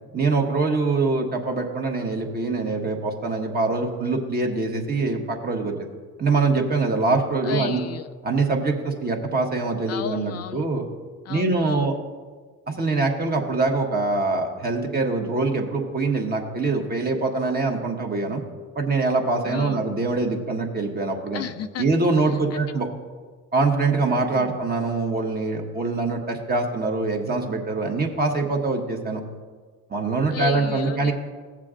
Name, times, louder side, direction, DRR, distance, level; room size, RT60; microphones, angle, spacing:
voice 1, 0.1-5.7 6.2-7.8 8.2-10.9 11.3-11.9 12.7-18.4 18.7-21.4 21.8-22.9 23.5-29.2 29.9-31.1, right 3 dB, 30° right, 2 dB, 1.4 m, -24 dB
voice 2, 7.4-8.1 9.9-10.7 11.2-12.0 19.4-19.8 21.3-21.8 22.2-22.7 24.3-24.6 30.3-31.1, left 9 dB, 50° left, 10 dB, 0.4 m, -33 dB
16.0 x 7.4 x 2.5 m, 1.5 s
cardioid pair, 90°, 32 cm